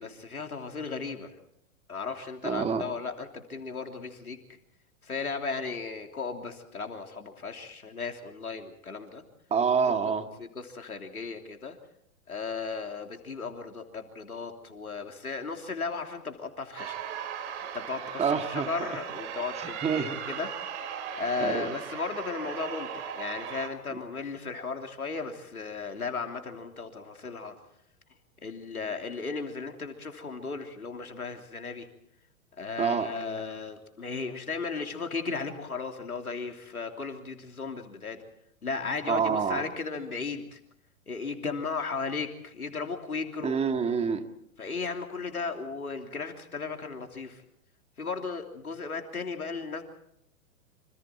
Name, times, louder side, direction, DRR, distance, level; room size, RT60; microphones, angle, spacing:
voice 1, 0.0-1.4 1.9-4.4 5.0-9.2 9.9-10.0 10.4-11.8 12.3-17.0 17.7-27.5 28.4-31.9 32.6-38.2 38.6-40.6 41.1-43.6 44.6-47.4 48.0-49.8, left 4 dB, 85° left, 4 dB, 3.2 m, -35 dB
voice 2, 2.4-2.8 9.5-10.2 18.2-18.7 19.6-20.2 21.4-21.7 32.8-33.1 39.1-39.6 43.4-44.2, right 6 dB, 15° right, 7 dB, 2.0 m, -27 dB
sound 1, 16.8-23.7, right 8 dB, 55° right, 4.1 m, -38 dB
27.0 x 26.5 x 4.4 m, 0.74 s
figure-of-eight pair, 110°, 42 cm